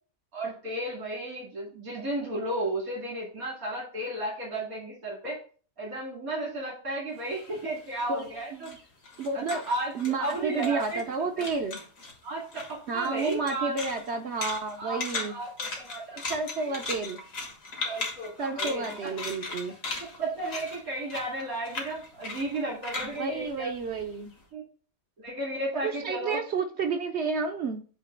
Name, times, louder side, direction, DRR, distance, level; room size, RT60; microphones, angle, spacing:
voice 1, 0.3-5.4 5.8-8.7 9.3-9.9 10.2-11.0 11.4-11.5 12.2-13.7 14.8-16.8 17.8-19.1 20.0-23.7 24.5-24.6 25.2-26.4, right 1 dB, 85° right, -5 dB, 2.7 m, -34 dB
sound 1, 7.2-11.1 11.4-12.2 12.5-24.3, left 3 dB, 70° left, 1.9 m, -38 dB
voice 2, 8.1-8.8 9.2-9.6 9.9-11.8 12.9-15.4 16.1-17.2 18.4-19.8 23.0-24.3 25.8-27.8, right 4 dB, 60° right, 4 dB, 0.8 m, -31 dB
8.2 x 2.8 x 4.3 m, 0.40 s
omnidirectional pair, 1.5 m